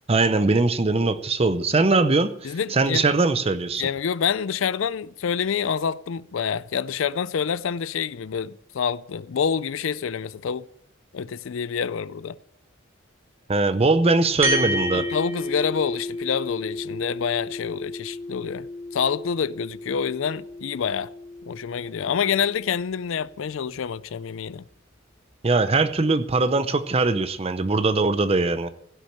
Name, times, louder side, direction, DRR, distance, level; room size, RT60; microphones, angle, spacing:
voice 1, 0.1-3.9 13.5-15.1 25.4-28.7, right 3 dB, 30° right, 0.6 m, -21 dB
voice 2, 2.4-3.1 3.8-10.7 11.1-12.4 14.9-18.7 18.9-21.1 21.5-24.6, left 7 dB, 70° left, 0.4 m, -27 dB
sound 1, 14.4-23.1, left 1 dB, 10° right, 2.8 m, -32 dB
16.0 x 6.3 x 9.9 m
head